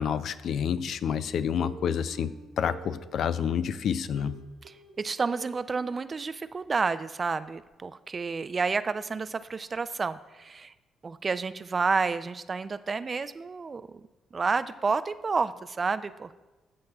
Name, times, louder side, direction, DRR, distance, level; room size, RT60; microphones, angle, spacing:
voice 1, 0.0-4.4, left 8 dB, 65° left, 14 dB, 0.3 m, -29 dB
Plucked string instrument, 1.6-3.5 4.2-7.0 7.3-7.4 7.7-7.8, right 5 dB, 65° right, 1.2 m, -48 dB
voice 2, 5.0-10.7 11.0-13.8 14.3-16.4, right 4 dB, 35° right, 14 dB, 0.3 m, -30 dB
13.5 x 6.6 x 2.3 m, 1.1 s
cardioid pair, 95°, 0 cm